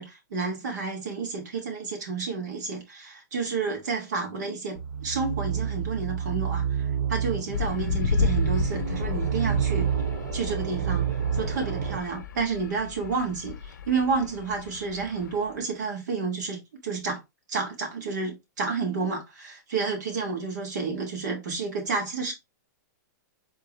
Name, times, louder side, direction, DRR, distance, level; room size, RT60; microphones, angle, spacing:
voice 1, 0.0-9.9 10.3-11.1 11.3-17.2 17.5-22.3, right 4 dB, 70° right, 2.2 m, -30 dB
sound 1, 4.7-12.0, right 8 dB, 45° right, 0.5 m, -28 dB
sound 2, 7.5-15.6, left 7 dB, 85° left, 0.5 m, -33 dB
3.9 x 3.7 x 3.1 m
hypercardioid pair, 165°, 10 cm